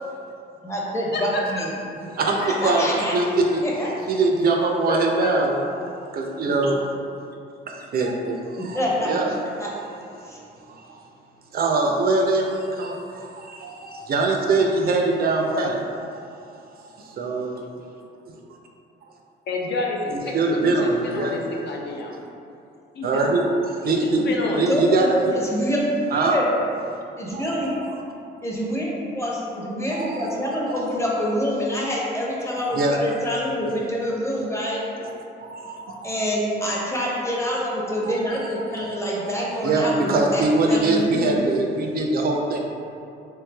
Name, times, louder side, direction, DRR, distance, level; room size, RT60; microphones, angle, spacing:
voice 1, 0.6-1.7 2.4-3.1 3.6-3.9 8.5-9.2 9.6-9.7 10.3-10.4 24.7-26.5 27.2-27.7 28.4-28.9 29.1-34.8 36.0-41.6, equal, 15° left, -4 dB, 0.7 m, -26 dB
voice 2, 2.1-3.7 4.1-5.6 6.0-6.8 7.7-9.3 10.7-11.0 11.5-16.2 17.0-17.7 20.1-21.4 23.0-23.4 23.8-24.2 24.6-25.2 26.1-26.4 27.3-27.5 29.9-30.3 30.7-30.9 32.7-33.0 35.4-36.1 38.0-38.2 39.3-39.4 39.6-42.6, right 3 dB, 50° right, 1 dB, 0.4 m, -23 dB
voice 3, 19.5-20.7 21.0-22.2 22.9-23.3 23.8-24.7, left 3 dB, 60° left, -1 dB, 0.5 m, -28 dB
3.2 x 3.0 x 2.2 m, 2.5 s
cardioid pair, 90°, 20 cm